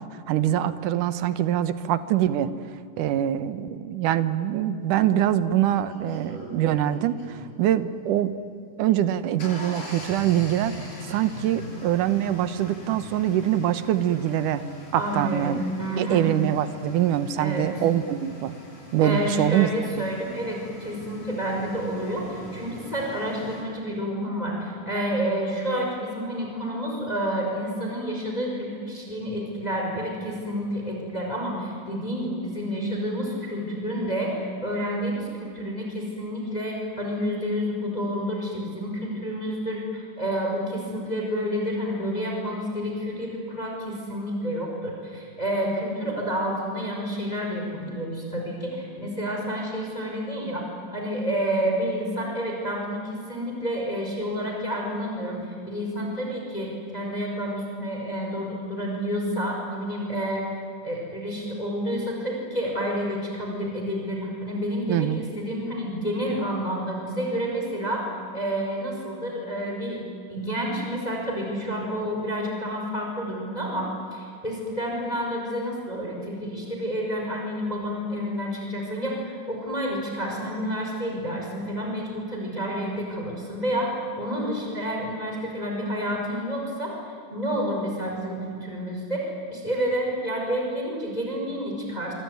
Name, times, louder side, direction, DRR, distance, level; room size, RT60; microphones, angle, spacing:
voice 1, 0.0-2.5 3.0-8.4 8.8-10.7 11.1-14.6 14.9-15.6 16.0-18.6 18.9-19.7 64.9-65.2, right 11 dB, 75° right, 13 dB, 2.5 m, -24 dB
sound 1, 5.0-5.1 5.7-7.6 9.0-23.6, equal, 45° left, 8.6 m, -42 dB
voice 2, 15.0-16.3 17.4-17.7 19.0-50.6 50.9-60.4 60.8-70.0 70.3-86.9 87.3-92.1, equal, 10° left, 0 dB, 5.2 m, -29 dB
25.5 x 25.0 x 9.4 m, 2.5 s
omnidirectional pair, 3.9 m